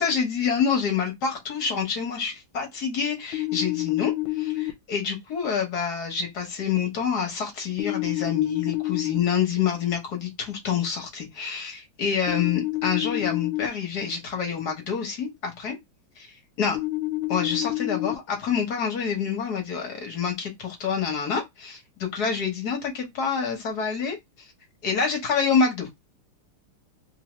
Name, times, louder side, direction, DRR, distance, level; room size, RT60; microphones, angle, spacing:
voice 1, 0.0-15.7 16.2-16.3 16.6-16.8 17.3-24.2 24.8-25.9, left 6 dB, 50° left, 1.6 m, -27 dB
sound 1, 3.3-4.7 7.8-9.2 12.3-13.7 16.7-18.1, left 18 dB, 70° left, 1.6 m, -28 dB
3.8 x 2.7 x 3.0 m
omnidirectional pair, 2.4 m